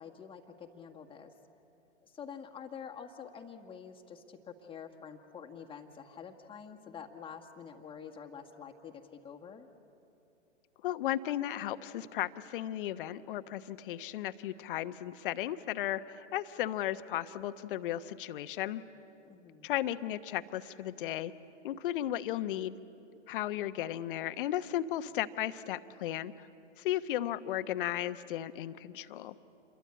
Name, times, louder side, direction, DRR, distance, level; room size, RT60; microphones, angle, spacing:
voice 1, 0.0-1.3 2.0-9.7 19.2-19.7, left 7 dB, 15° left, 2 dB, 1.7 m, -47 dB
voice 2, 10.8-18.8 19.6-21.3 21.6-22.8 23.3-26.5 26.8-29.4, left 12 dB, 45° left, 12 dB, 1.1 m, -35 dB
28.5 x 23.0 x 8.7 m, 2.9 s
figure-of-eight pair, 110°, 35 cm